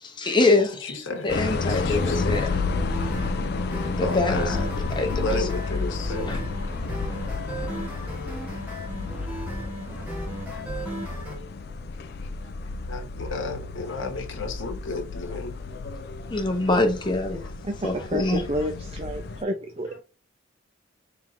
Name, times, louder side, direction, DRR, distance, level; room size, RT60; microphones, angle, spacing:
voice 1, 0.0-2.5 4.0-4.6 5.0-5.5 6.3-6.4 16.3-17.5 17.8-18.5, left 2 dB, 20° left, 0.8 m, -24 dB
voice 2, 0.8-1.3 1.7-2.3 3.6-6.4 7.8-9.6 9.9-10.0 10.3-11.1 12.2-12.5 12.9-15.5 17.4-17.5 18.5-18.7 19.9-20.0, left 2 dB, 70° left, 1.2 m, -35 dB
sound 1, 1.3-19.4, left 4 dB, 50° left, 0.4 m, -31 dB
sound 2, 1.7-11.4, equal, 10° right, 1.6 m, -35 dB
voice 3, 17.6-19.9, equal, 30° right, 0.5 m, -30 dB
4.5 x 3.6 x 2.5 m
head